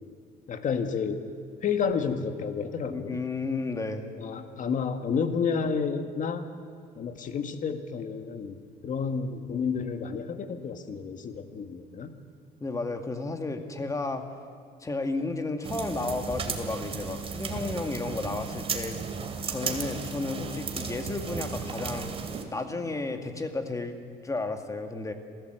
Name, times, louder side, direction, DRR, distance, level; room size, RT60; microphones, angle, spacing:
voice 1, 0.5-1.2 1.6-3.2 4.2-6.5 7.0-8.6 8.8-12.1, left 6 dB, 50° left, 7 dB, 1.9 m, -30 dB
voice 2, 2.9-4.1 12.6-14.2 14.8-19.0 19.5-22.1 22.5-24.0 24.2-25.1, left 3 dB, 20° left, 5 dB, 2.2 m, -32 dB
sound 1, 15.6-22.4, right 5 dB, 35° right, 2.6 m, -35 dB
27.0 x 16.0 x 8.0 m, 2.3 s
cardioid pair, 110°, 17 cm